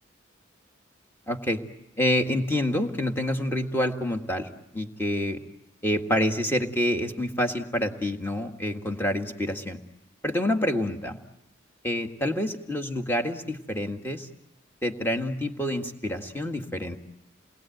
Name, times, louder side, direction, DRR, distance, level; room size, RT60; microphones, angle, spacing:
voice 1, 1.3-1.6 2.0-4.5 4.7-5.4 5.8-9.8 10.2-11.2 11.8-14.3 14.8-17.0, left 1 dB, 10° left, 4 dB, 1.8 m, -27 dB
29.0 x 21.0 x 9.2 m, 0.94 s
head